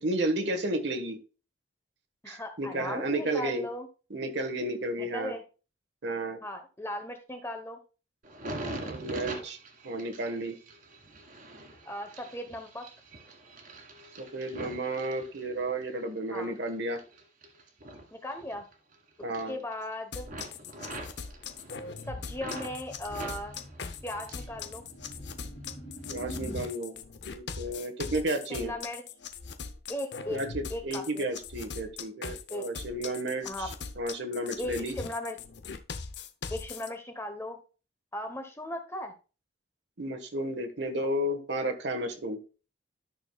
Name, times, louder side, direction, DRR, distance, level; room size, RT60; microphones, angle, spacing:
voice 1, 0.0-1.2 2.3-3.7 4.1-5.4 6.0-6.4 8.8-9.6 9.8-10.5 14.2-17.0 19.2-19.6 26.1-27.0 27.3-28.7 30.3-34.9 40.0-42.4, right 1 dB, 60° right, 5 dB, 1.4 m, -32 dB
voice 2, 2.2-3.9 5.0-5.4 6.4-7.8 11.9-12.9 16.3-16.5 18.1-18.7 19.5-20.3 22.1-23.6 24.0-24.8 28.5-29.0 29.9-30.4 30.7-31.3 32.5-32.7 33.4-33.7 34.6-35.4 36.5-37.6 38.1-39.1, left 1 dB, 15° left, 6 dB, 1.0 m, -37 dB
sound 1, 8.2-15.9 16.4-19.0 19.2-19.9 20.2-22.7 23.1-24.6 24.9-25.6 26.2-26.4, right 1 dB, 45° right, 1.8 m, -43 dB
sound 2, 20.1-36.9, left 5 dB, 60° left, 0.7 m, -41 dB
sound 3, 21.4-26.7, equal, 30° left, 2.5 m, -45 dB
13.0 x 6.3 x 2.3 m, 0.34 s
head